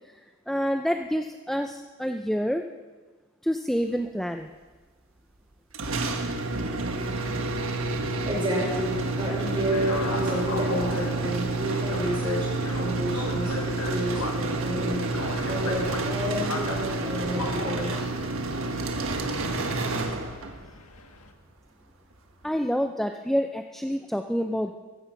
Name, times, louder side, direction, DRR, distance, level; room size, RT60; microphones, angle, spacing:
voice 1, 0.5-2.6 3.4-4.5 22.4-24.7, equal, ahead, 5 dB, 0.5 m, -27 dB
sound 1, 5.7-20.7, right 3 dB, 70° right, 1.5 m, -29 dB
voice 2, 8.2-12.5 12.8-15.0 15.5-18.0, equal, 20° right, -3 dB, 5.7 m, -30 dB
sound 2, 9.4-21.3, left 4 dB, 85° left, 1.6 m, -37 dB
sound 3, 15.1-20.1, equal, 70° left, 2.5 m, -46 dB
15.0 x 15.0 x 5.8 m, 1.3 s
head